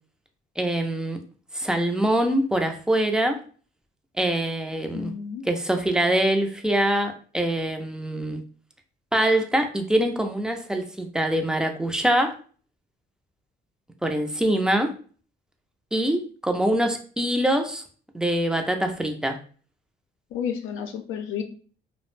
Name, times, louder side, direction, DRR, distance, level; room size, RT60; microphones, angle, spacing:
voice 1, 0.6-1.2 1.5-3.4 4.2-5.1 5.5-8.4 9.1-12.3 14.0-14.9 15.9-17.8 18.1-19.4, right 1 dB, 5° right, 5 dB, 0.4 m, -24 dB
voice 2, 4.9-5.5 20.3-21.4, left 8 dB, 85° left, 4 dB, 0.4 m, -31 dB
2.4 x 2.0 x 3.1 m, 0.41 s
cardioid pair, 90°, 20 cm